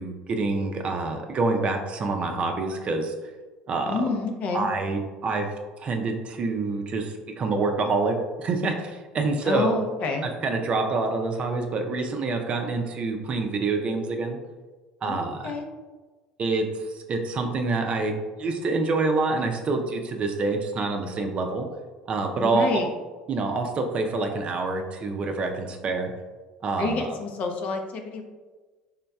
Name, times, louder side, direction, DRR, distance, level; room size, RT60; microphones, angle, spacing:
voice 1, 0.0-3.1 3.7-4.0 4.5-5.5 5.8-9.8 10.4-14.4 15.0-15.4 16.4-16.6 17.1-18.1 18.4-21.7 22.1-22.7 23.3-26.1 26.6-27.0, right 3 dB, 45° right, 4 dB, 0.5 m, -26 dB
voice 2, 3.9-4.7 9.4-10.3 15.0-15.7 22.4-22.9 26.8-28.2, left 3 dB, 55° left, 3 dB, 0.7 m, -28 dB
4.0 x 3.6 x 2.3 m, 1.3 s
supercardioid pair, 90°, 3 cm